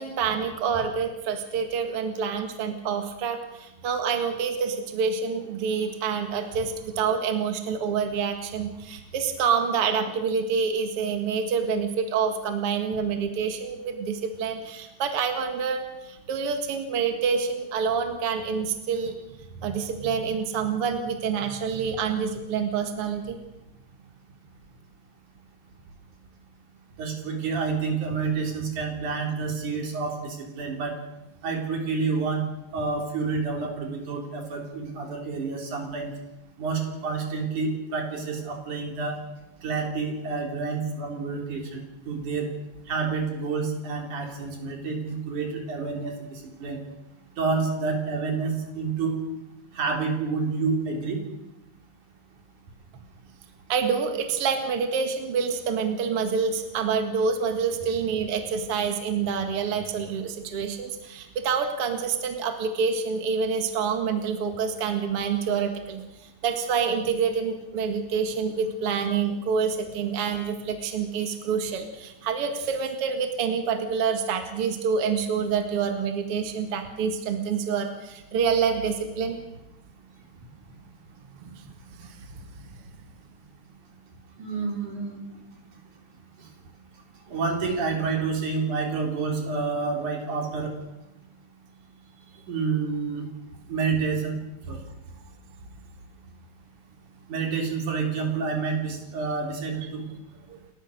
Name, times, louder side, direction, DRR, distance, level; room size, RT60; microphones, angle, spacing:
voice 1, 0.0-19.2 19.6-23.4 53.7-66.0 66.4-79.4 81.4-81.7 82.0-82.3 82.6-82.7 100.5-100.6, right 6 dB, 55° right, 6 dB, 2.6 m, -27 dB
voice 2, 27.0-30.9 31.4-32.4 32.7-36.1 36.6-39.2 39.6-41.8 42.1-42.5 42.9-46.8 47.4-49.2 49.7-51.2 84.4-85.2 87.3-90.7 92.5-93.3 93.7-94.4 94.7-94.8 97.3-100.0, right 4 dB, 90° right, 2 dB, 5.0 m, -28 dB
29.0 x 14.5 x 6.6 m, 0.93 s
omnidirectional pair, 3.4 m